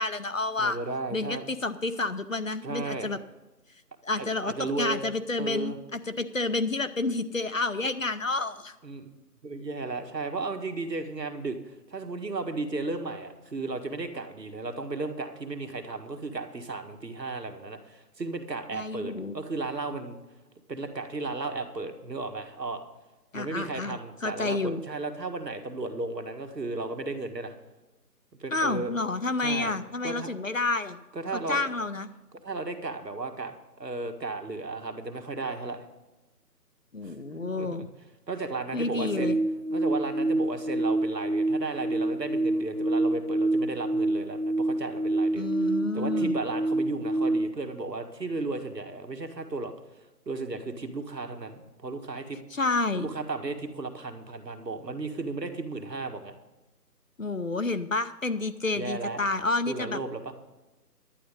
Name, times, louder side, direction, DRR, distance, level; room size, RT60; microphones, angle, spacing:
voice 1, 0.0-0.8 1.1-3.2 4.0-8.7 18.7-19.4 23.3-24.8 28.5-31.0 31.3-32.1 36.9-37.9 38.7-39.4 45.4-46.4 52.5-53.1 57.2-60.0, left 3 dB, 50° left, 11 dB, 0.7 m, -30 dB
voice 2, 0.6-1.5 2.6-3.1 4.2-5.0 5.4-5.8 8.8-20.2 20.7-22.8 23.3-27.5 28.4-28.9 29.4-29.8 30.0-30.3 31.1-31.7 32.4-35.8 37.0-37.7 38.3-39.4 39.7-45.5 45.9-49.7 50.3-52.4 52.9-56.3 58.8-59.2 59.7-60.3, right 3 dB, 80° right, 7 dB, 1.8 m, -34 dB
sound 1, 38.9-47.5, right 2 dB, 40° right, 1.7 m, -27 dB
11.5 x 9.2 x 5.3 m, 1.1 s
figure-of-eight pair, 170°, 49 cm